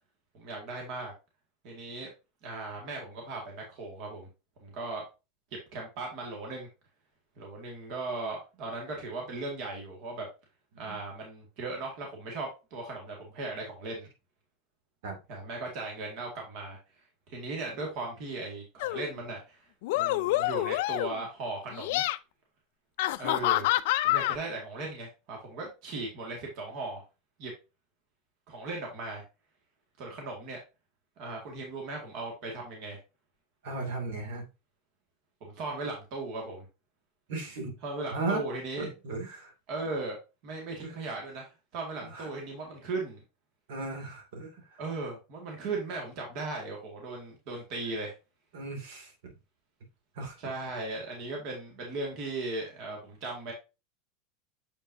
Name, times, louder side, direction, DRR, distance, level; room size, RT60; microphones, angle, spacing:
voice 1, 0.3-1.1 1.6-2.1 2.4-4.3 4.6-5.0 5.5-6.7 7.4-10.3 10.8-14.1 15.3-16.8 17.3-19.7 19.9-22.0 23.2-23.7 24.0-27.0 27.4-27.5 28.5-29.2 30.0-30.6 31.2-33.0 35.4-36.7 37.8-38.9 39.7-40.2 40.4-43.2 44.8-48.1 50.4-53.5, right 3 dB, 40° right, 2.0 m, -37 dB
sound 1, 18.8-19.1 19.8-21.2 21.7-22.2 23.0-24.4, left 17 dB, 60° left, 0.4 m, -27 dB
voice 2, 33.6-34.5 37.3-37.8 38.1-38.4 38.8-39.5 40.8-40.9 42.0-42.3 43.7-44.8 48.5-49.1 50.1-50.6, right 3 dB, 70° right, 2.5 m, -36 dB
7.0 x 5.5 x 2.7 m
supercardioid pair, 175°, 0 cm